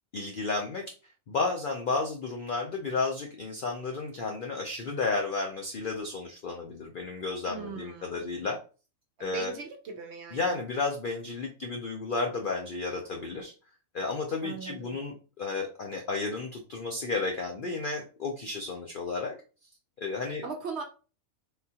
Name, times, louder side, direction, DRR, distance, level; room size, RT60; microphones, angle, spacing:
voice 1, 0.1-0.8 1.3-8.6 9.2-9.5 10.3-13.5 13.9-19.3 20.0-20.4, left 3 dB, 75° left, 1 dB, 0.4 m, -32 dB
voice 2, 7.5-8.3 9.2-10.6 14.4-14.9 20.4-20.8, right 5 dB, 65° right, 4 dB, 0.7 m, -39 dB
3.6 x 2.4 x 2.7 m, 0.35 s
omnidirectional pair, 1.5 m